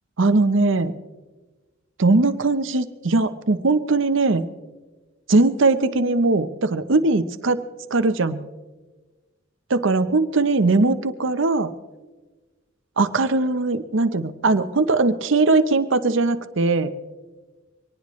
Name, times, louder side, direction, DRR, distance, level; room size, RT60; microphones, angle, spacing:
voice 1, 0.2-0.9 2.0-4.4 5.3-7.6 7.9-8.4 9.7-11.7 13.0-16.9, right 3 dB, 65° right, 11 dB, 0.8 m, -20 dB
23.0 x 19.0 x 3.1 m, 1.2 s
head